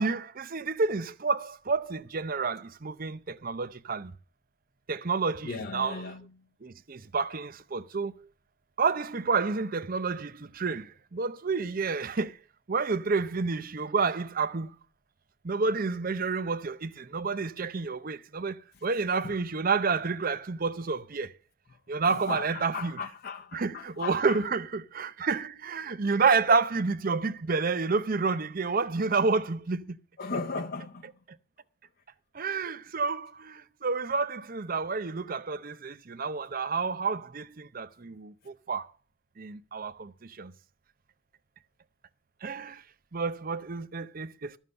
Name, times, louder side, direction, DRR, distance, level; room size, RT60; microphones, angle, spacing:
voice 1, 0.0-4.1 4.9-6.1 6.6-8.3 8.8-12.4 12.7-14.8 15.4-21.3 21.9-23.0 23.5-30.0 32.3-38.9 39.4-40.5 42.4-42.8 43.1-44.6, right 4 dB, 45° right, 0.6 m, -29 dB
voice 2, 5.4-6.2 19.2-19.3 22.1-24.4 30.2-31.1, left 4 dB, 50° left, 0.8 m, -36 dB
13.0 x 7.3 x 6.6 m
head